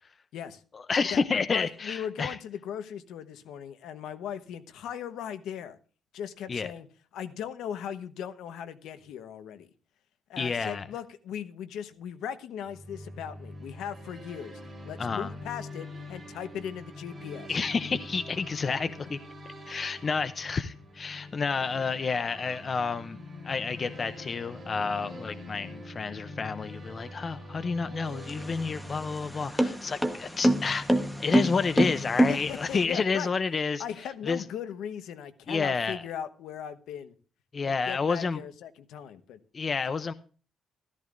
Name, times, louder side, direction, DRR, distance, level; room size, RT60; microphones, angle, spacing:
voice 1, 0.7-2.4 6.5-6.7 10.4-10.9 15.0-15.3 17.5-19.2 19.7-23.2 23.4-33.8 34.3-34.4 35.5-36.0 37.5-38.4 39.5-40.1, left 5 dB, 25° left, 11 dB, 0.5 m, -30 dB
voice 2, 1.5-5.8 6.1-6.9 7.1-9.7 10.3-14.6 14.8-17.5 32.3-33.3 33.8-37.1 37.6-39.4, left 9 dB, 75° left, 10 dB, 1.1 m, -38 dB
sound 1, 12.6-30.4, left 1 dB, 20° right, 6.6 m, -44 dB
sound 2, 28.1-32.8, right 1 dB, ahead, 1.1 m, -26 dB
14.0 x 14.0 x 2.6 m, 0.38 s
cardioid pair, 170°, 0 cm